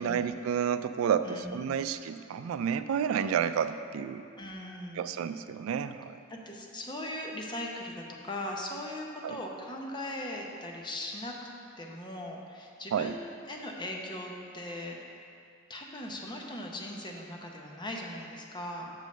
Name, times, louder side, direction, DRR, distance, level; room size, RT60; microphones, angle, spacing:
voice 1, 0.0-4.3 5.0-6.2 9.2-9.4 12.9-13.1, right 7 dB, 80° right, 12 dB, 0.3 m, -30 dB
voice 2, 1.2-1.8 4.4-5.1 6.3-11.3 11.8-15.0 15.7-18.9, left 1 dB, 20° left, 0 dB, 0.8 m, -39 dB
6.4 x 5.3 x 6.5 m, 2.4 s
head